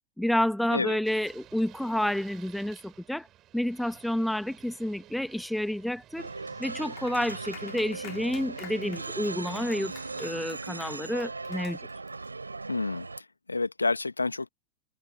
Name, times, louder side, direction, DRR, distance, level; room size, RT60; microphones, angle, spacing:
voice 1, 0.2-3.3 3.5-6.3 6.6-9.9 10.2-11.8, left 1 dB, ahead, 1.3 m, -29 dB
sound 1, 1.0-10.4, right 13 dB, 35° right, 6.8 m, -54 dB
sound 2, 6.2-13.2, right 3 dB, 80° right, 3.0 m, -38 dB
Clapping, 7.0-12.3, left 16 dB, 35° left, 1.9 m, -51 dB
voice 2, 12.7-14.5, left 3 dB, 80° left, 1.2 m, -29 dB
open air
figure-of-eight pair, 90°, 0 cm